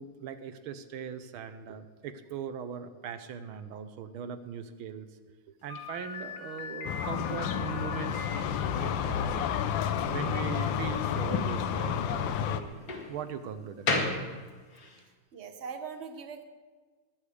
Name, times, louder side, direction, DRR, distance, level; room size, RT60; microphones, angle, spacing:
voice 1, 0.0-5.1 5.6-8.3 8.7-9.5 10.1-12.8 13.1-14.0, right 7 dB, 75° right, 10 dB, 1.6 m, -40 dB
Slam, 5.7-15.0, left 3 dB, 45° left, 2.0 m, -38 dB
sound 1, 6.8-12.6, left 8 dB, 70° left, 1.3 m, -30 dB
voice 2, 15.3-16.4, right 6 dB, 40° right, 7 dB, 1.1 m, -40 dB
21.0 x 8.8 x 4.9 m, 1.4 s
omnidirectional pair, 2.4 m